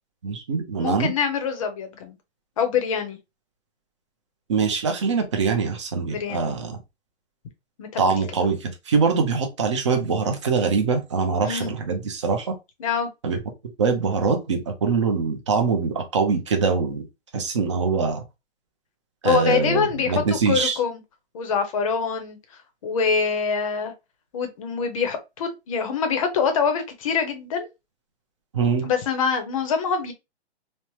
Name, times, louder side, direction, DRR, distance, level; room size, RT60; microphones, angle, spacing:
voice 1, 0.2-1.1 4.5-6.8 8.0-12.6 13.2-13.4 13.8-17.1 17.3-18.2 19.2-20.8 28.5-28.9, right 5 dB, 30° right, 0.4 m, -23 dB
voice 2, 0.8-2.2 2.6-3.2 6.1-6.5 7.8-8.0 11.4-11.7 12.8-13.1 19.2-21.0 21.3-22.4 22.8-23.9 24.3-27.7 28.8-30.1, left 6 dB, 30° left, 0.6 m, -25 dB
3.1 x 2.0 x 2.8 m
hypercardioid pair, 160°, 34 cm